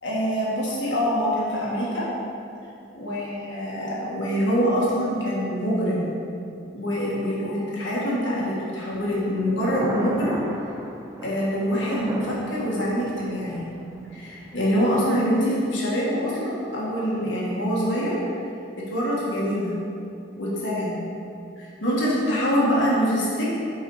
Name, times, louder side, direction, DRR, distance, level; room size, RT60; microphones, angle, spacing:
voice 1, 0.0-2.1 2.9-6.1 6.7-10.4 11.2-13.6 14.1-18.2 18.9-19.7 20.4-21.0 21.6-23.5, equal, 90° left, -6 dB, 1.6 m, -25 dB
Thunder, 8.9-14.9, right 1 dB, 15° right, 0.4 m, -36 dB
5.9 x 4.7 x 4.8 m, 2.6 s
head